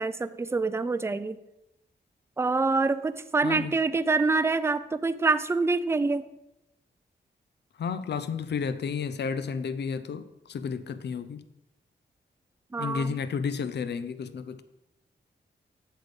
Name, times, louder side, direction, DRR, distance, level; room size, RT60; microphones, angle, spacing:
voice 1, 0.0-1.4 2.4-6.3 12.7-13.1, right 3 dB, 15° right, 0.3 m, -26 dB
voice 2, 3.4-3.8 7.8-11.5 12.8-14.6, left 6 dB, 70° left, 0.5 m, -32 dB
8.3 x 7.7 x 3.6 m
wide cardioid pair, 145°, 18 cm